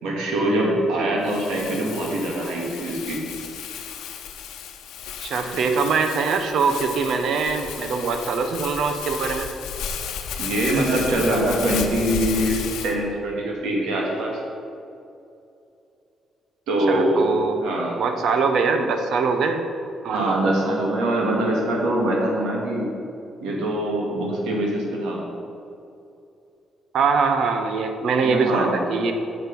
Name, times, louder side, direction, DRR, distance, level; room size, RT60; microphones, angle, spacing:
voice 1, 0.0-3.2 10.4-14.3 16.7-17.3 17.6-18.0 20.1-22.9 23.4-25.2 28.2-28.7, right 1 dB, 90° right, -2 dB, 2.1 m, -23 dB
Crumpling crinkling, 1.2-12.9, left 8 dB, 90° left, 0.8 m, -34 dB
voice 2, 5.2-9.5 16.9-17.7 18.0-19.6 20.0-20.4 26.9-29.1, right 4 dB, 70° right, 6 dB, 0.9 m, -23 dB
8.9 x 6.7 x 5.3 m, 2.6 s
cardioid pair, 90°, 0 cm